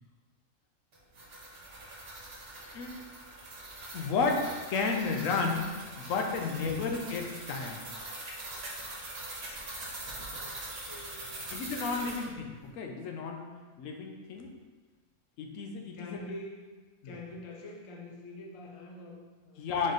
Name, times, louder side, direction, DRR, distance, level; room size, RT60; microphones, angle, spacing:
sound 1, 0.9-12.3, right 2 dB, 55° right, 1.1 m, -43 dB
voice 1, 3.9-5.7 6.0-7.8 11.5-13.5 13.8-14.5 15.4-16.2 17.0-17.1 19.6-19.9, left 4 dB, 85° left, 3 dB, 1.0 m, -32 dB
voice 2, 6.4-6.9 10.4-10.6 10.9-11.5 11.9-12.4 15.9-16.7 17.0-19.8, left 2 dB, 45° left, 0 dB, 0.4 m, -45 dB
4.0 x 3.2 x 4.0 m, 1.4 s
omnidirectional pair, 1.3 m